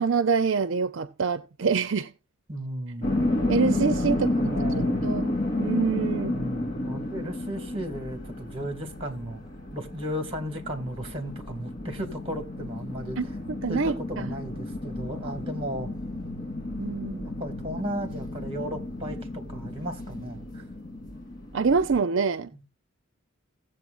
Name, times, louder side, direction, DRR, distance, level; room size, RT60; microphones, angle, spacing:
voice 1, 0.0-2.1 3.5-4.6 5.0-6.3 13.2-14.3 16.8-17.2 21.5-22.7, right 5 dB, 60° right, 0.6 m, -26 dB
voice 2, 2.5-3.1 4.1-5.1 6.3-9.4 9.7-13.2 13.7-15.9 17.0-20.6 22.5-22.6, equal, 25° right, 2.2 m, -35 dB
sound 1, 3.0-22.0, left 2 dB, 40° left, 2.9 m, -31 dB
16.5 x 7.7 x 2.5 m
head